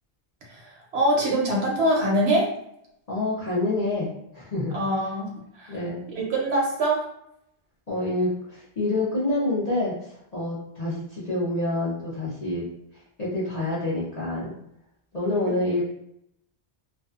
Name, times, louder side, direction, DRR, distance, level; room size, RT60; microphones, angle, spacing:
voice 1, 0.5-2.5 4.7-5.8 6.2-7.0, right 1 dB, 75° right, -2 dB, 1.0 m, -24 dB
voice 2, 3.1-4.8 5.7-6.0 7.9-12.7 12.9-14.5 15.1-15.9, left 2 dB, 45° left, -9 dB, 0.7 m, -27 dB
2.6 x 2.2 x 2.4 m, 0.77 s
omnidirectional pair, 1.1 m